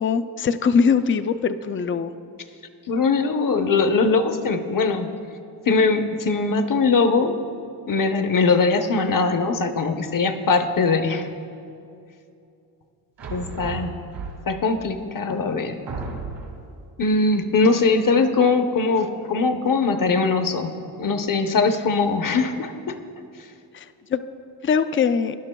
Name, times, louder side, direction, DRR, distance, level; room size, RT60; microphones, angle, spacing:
voice 1, 0.0-2.1 23.7-24.2 24.6-25.4, left 6 dB, 30° left, 12 dB, 0.4 m, -22 dB
voice 2, 2.9-5.1 5.7-7.4 7.9-11.3 13.3-14.0 14.5-15.8 17.0-23.0, left 4 dB, 50° left, 7 dB, 0.8 m, -21 dB
sound 1, 13.2-14.7 15.3-15.4 15.9-16.7, right 4 dB, 80° right, 1.9 m, -33 dB
18.0 x 11.0 x 2.3 m, 2.6 s
cardioid pair, 80°, 43 cm